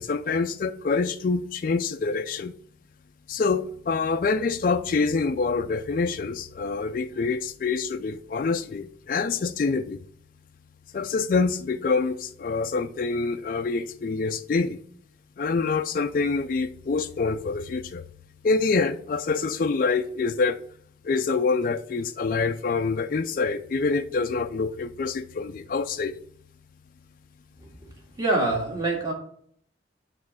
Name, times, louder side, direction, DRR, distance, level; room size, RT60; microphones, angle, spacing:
voice 1, 0.0-2.5 3.3-10.0 10.9-14.8 15.4-18.0 18.4-20.6 21.0-26.2, left 4 dB, 45° left, 0.3 m, -26 dB
voice 2, 28.2-29.1, right 2 dB, 20° right, 1.9 m, -25 dB
9.3 x 3.2 x 6.1 m
head